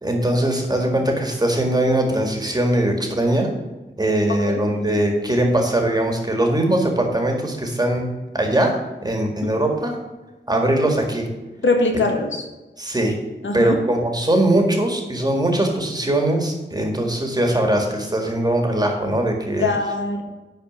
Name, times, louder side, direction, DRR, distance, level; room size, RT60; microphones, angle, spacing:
voice 1, 0.0-3.5 4.0-8.0 8.3-10.0 10.5-11.3 12.8-13.2 13.5-19.7, right 1 dB, 20° right, 3 dB, 1.9 m, -21 dB
voice 2, 11.6-12.4 13.4-13.8 19.6-20.2, left 3 dB, 80° left, 3 dB, 1.6 m, -22 dB
11.0 x 4.4 x 7.4 m, 1.1 s
wide cardioid pair, 125°, 19 cm